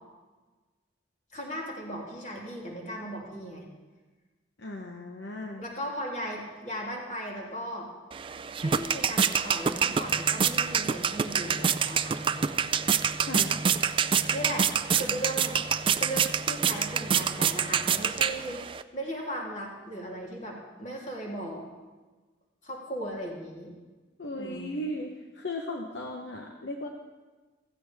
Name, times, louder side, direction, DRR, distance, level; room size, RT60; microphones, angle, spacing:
voice 1, 1.3-3.7 5.6-7.9 8.6-12.6 14.3-15.6 15.9-21.7 22.6-23.7 24.4-24.7, equal, 40° left, -3 dB, 3.1 m, -37 dB
voice 2, 4.6-5.6 13.2-13.5 24.2-26.9, left 1 dB, 70° left, 2 dB, 1.0 m, -36 dB
sound 1, 8.1-18.8, right 7 dB, 25° right, 0.3 m, -27 dB
sound 2, 9.9-17.9, equal, 20° left, 1.7 m, -43 dB
15.5 x 15.0 x 3.5 m, 1.3 s
head